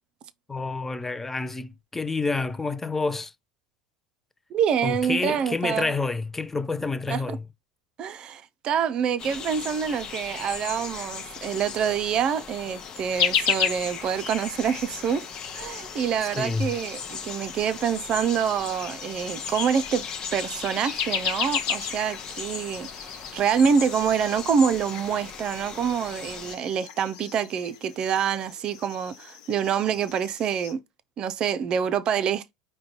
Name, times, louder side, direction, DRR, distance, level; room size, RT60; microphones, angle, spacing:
voice 1, 0.5-3.3 4.8-7.5 16.4-16.7, left 3 dB, 10° left, 0.5 m, -28 dB
voice 2, 4.5-5.9 7.1-7.4 8.0-15.3 15.5-20.0 20.3-22.9 23.1-30.8 31.2-32.5, right 7 dB, 40° right, 0.5 m, -26 dB
sound 1, 9.2-26.6, left 6 dB, 35° left, 0.9 m, -38 dB
sound 2, 13.1-30.7, left 8 dB, 60° left, 1.1 m, -34 dB
5.0 x 2.2 x 4.5 m
hypercardioid pair, 80°, 2 cm